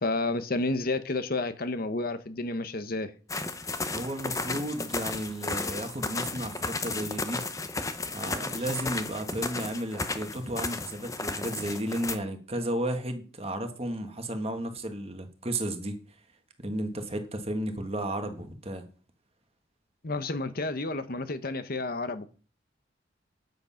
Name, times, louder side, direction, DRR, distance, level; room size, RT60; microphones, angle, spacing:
voice 1, 0.0-3.1 20.0-22.3, left 2 dB, 50° left, 0.9 m, -30 dB
sound 1, 3.3-12.2, left 3 dB, 15° left, 0.8 m, -34 dB
voice 2, 3.9-7.4 8.1-16.0 16.6-18.8, right 1 dB, 30° right, 1.6 m, -33 dB
9.3 x 8.0 x 5.7 m
head